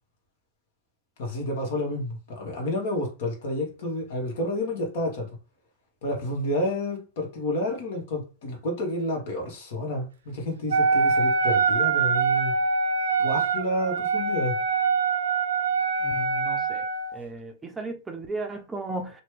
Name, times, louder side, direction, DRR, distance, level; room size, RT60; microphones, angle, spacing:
voice 1, 1.2-5.3 6.0-12.6 13.2-14.6, left 1 dB, 65° left, 1.3 m, -30 dB
Wind instrument woodwind instrument, 10.7-17.2, right 4 dB, 85° right, 0.6 m, -24 dB
voice 2, 16.0-16.8 17.1-19.1, right 3 dB, 15° right, 0.6 m, -35 dB
3.0 x 2.2 x 3.2 m
hypercardioid pair, 115°, 0 cm